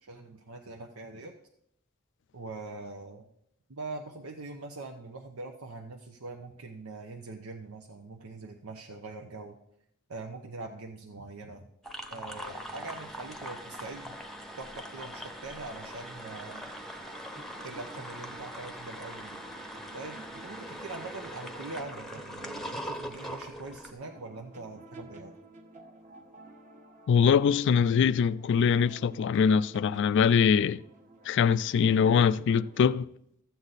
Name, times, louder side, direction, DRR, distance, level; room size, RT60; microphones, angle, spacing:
voice 1, 0.0-1.3 2.3-3.3 3.7-9.6 10.1-11.7 12.1-14.2 14.6-16.7 17.6-19.5 19.9-25.3, right 3 dB, 85° right, 0.8 m, -43 dB
sound 1, 11.8-23.9, equal, ahead, 0.8 m, -42 dB
sound 2, 16.8-32.9, right 2 dB, 35° right, 1.1 m, -52 dB
voice 2, 27.1-30.8 31.3-33.1, left 7 dB, 55° left, 0.3 m, -23 dB
13.5 x 8.1 x 4.0 m
head